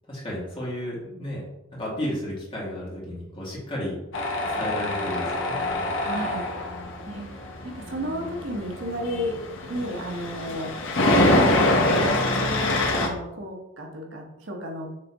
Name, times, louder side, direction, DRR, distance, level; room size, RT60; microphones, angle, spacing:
voice 1, 0.1-1.5 1.7-4.0 4.6-6.0 9.7-9.8, left 1 dB, 25° left, -5 dB, 2.0 m, -33 dB
Tools, 4.1-13.1, left 1 dB, 70° left, 1.0 m, -25 dB
voice 2, 6.0-6.8 7.1-9.4 9.7-10.8 11.2-11.7 12.0-14.9, equal, 70° right, 0 dB, 1.2 m, -33 dB
6.6 x 3.5 x 4.2 m, 0.92 s
head